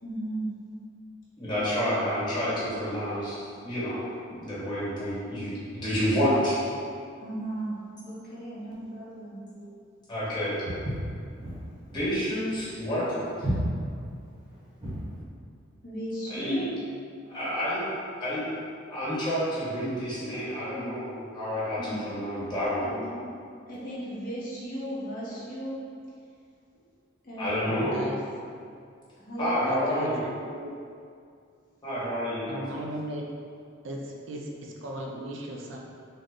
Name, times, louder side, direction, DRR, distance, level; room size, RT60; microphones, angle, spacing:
voice 1, 0.0-0.5 1.4-1.9 7.2-9.4 15.8-16.6 21.8-22.0 22.8-23.3 23.7-25.8 27.2-28.0 29.2-29.9, right 1 dB, 45° left, -9 dB, 1.0 m, -36 dB
voice 2, 1.4-6.6 9.1-9.2 9.6-9.7 10.1-10.6 11.9-13.5 16.3-16.7 17.3-17.9 18.2-18.5 18.9-22.9 27.4-28.0 29.4-30.2 31.8-32.8, equal, 20° left, -11 dB, 1.3 m, -29 dB
Walk footsteps, 10.7-15.1, right 1 dB, 30° right, 0.9 m, -33 dB
voice 3, 27.7-28.2 29.7-30.7 32.5-33.2 33.8-35.8, right 1 dB, 70° right, -1 dB, 0.4 m, -37 dB
3.6 x 2.0 x 3.8 m, 2.3 s
head